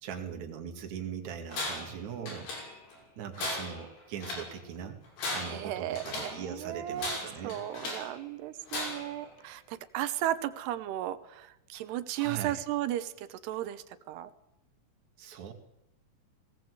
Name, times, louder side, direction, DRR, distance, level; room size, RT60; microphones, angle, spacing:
voice 1, 0.0-2.5 3.2-5.0 5.3-7.6 12.2-12.6 15.2-15.5, right 7 dB, 50° right, 4 dB, 3.3 m, -40 dB
Tools, 1.5-2.0 2.3-3.0 3.4-4.5 5.0-6.4 7.0-8.1 8.7-9.2, left 2 dB, 75° left, 8.4 m, -37 dB
voice 2, 5.4-7.2 7.4-14.3, right 13 dB, 80° right, 13 dB, 3.1 m, -35 dB
19.5 x 18.0 x 8.1 m, 0.89 s
omnidirectional pair, 4.7 m